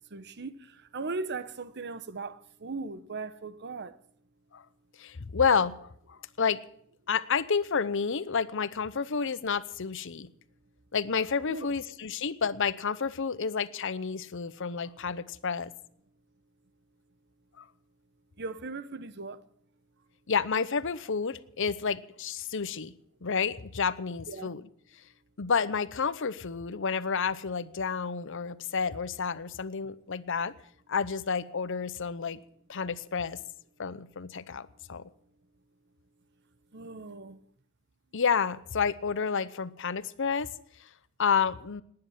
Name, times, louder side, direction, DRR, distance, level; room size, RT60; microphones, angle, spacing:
voice 1, 0.1-4.0 11.5-11.7 18.4-19.4 24.3-24.5 36.7-37.4, right 3 dB, 55° right, 0.9 m, -38 dB
voice 2, 5.0-6.6 7.1-10.3 10.9-15.7 17.6-17.7 20.3-22.9 23.2-24.7 25.4-30.5 30.9-32.4 32.7-33.4 33.8-35.1 38.1-40.5 40.8-40.9 41.2-41.8, left 6 dB, 60° left, 0.8 m, -30 dB
19.0 x 9.7 x 7.3 m
head